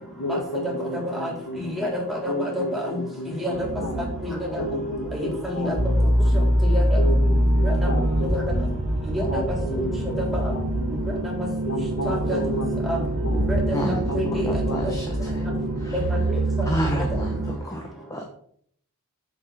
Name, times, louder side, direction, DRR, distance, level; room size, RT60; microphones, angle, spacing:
voice 1, 0.2-1.8 2.2-4.1 4.6-6.5 7.0-8.8 9.3-11.2 11.6-13.5 14.1-14.9 15.5-16.0 17.5-17.6, equal, 75° left, 5 dB, 1.6 m, -32 dB
voice 2, 1.1-3.0 3.4-3.7 4.2-4.6 5.1-5.7 6.6-7.0 7.6-7.8 8.2-8.4 9.1-9.4 9.8-9.9 10.2-10.4 11.2-11.3 12.0-12.4 12.9-13.0 13.5-14.5 14.8-14.9 15.9-16.4 17.0-17.1, equal, ahead, -3 dB, 3.7 m, -29 dB
sound 1, 3.5-17.6, right 1 dB, 55° right, 1.3 m, -24 dB
voice 3, 13.7-15.5 15.7-16.0 16.6-18.2, equal, 15° left, 2 dB, 1.2 m, -30 dB
8.6 x 7.4 x 5.0 m, 0.64 s
head